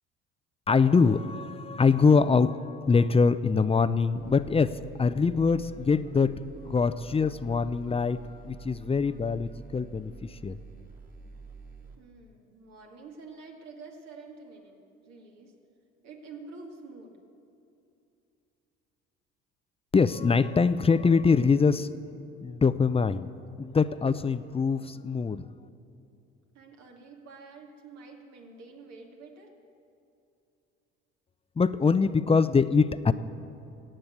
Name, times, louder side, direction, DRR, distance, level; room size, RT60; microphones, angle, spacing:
voice 1, 0.7-6.3 6.6-10.6 19.9-21.9 22.4-23.3 23.6-25.5 31.6-33.1, left 5 dB, 20° left, 14 dB, 0.6 m, -24 dB
sound 1, 4.1-11.9, right 4 dB, 30° right, 2.4 m, -48 dB
voice 2, 12.0-15.5 16.0-17.1 26.5-29.5, right 4 dB, 65° right, 1 dB, 2.5 m, -48 dB
15.5 x 8.9 x 8.1 m, 2.7 s
hypercardioid pair, 65°, 29 cm